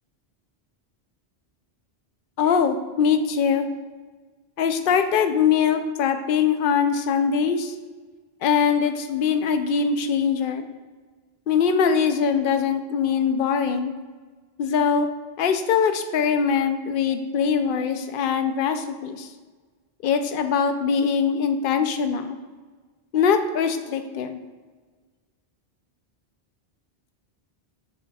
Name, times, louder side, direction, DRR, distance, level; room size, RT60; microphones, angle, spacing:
voice 1, 2.4-3.7 4.6-7.7 8.4-10.7 11.5-13.9 14.6-15.1 15.4-19.3 20.0-22.4 23.1-24.4, left 6 dB, 60° left, 8 dB, 0.7 m, -22 dB
7.4 x 6.7 x 2.3 m, 1.4 s
omnidirectional pair, 1.1 m